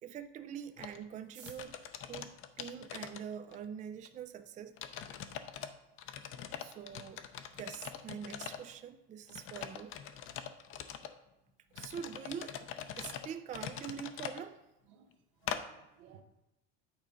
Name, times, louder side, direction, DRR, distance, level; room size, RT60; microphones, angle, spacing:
voice 1, 0.0-4.8 5.2-5.4 6.6-7.2 7.6-10.0 11.7-12.6 13.0-14.6, right 8 dB, 25° right, 9 dB, 0.4 m, -44 dB
sound 1, 0.8-1.0 1.4-3.7 4.0-4.1 4.8-5.7 6.0-8.7 9.3-11.1 11.7-14.4 15.5-15.6, left 9 dB, 45° left, 0.6 m, -43 dB
sound 2, 1.2-3.4 4.2-4.3 4.5-4.6 4.9-5.4 5.7-5.8 6.0-6.4 6.7-6.9 7.3-7.6, right 7 dB, 50° right, 1.7 m, -58 dB
voice 2, 14.9-16.2, right 8 dB, 75° right, 7 dB, 0.9 m, -61 dB
9.0 x 3.6 x 5.1 m, 0.95 s
supercardioid pair, 115°, 30 cm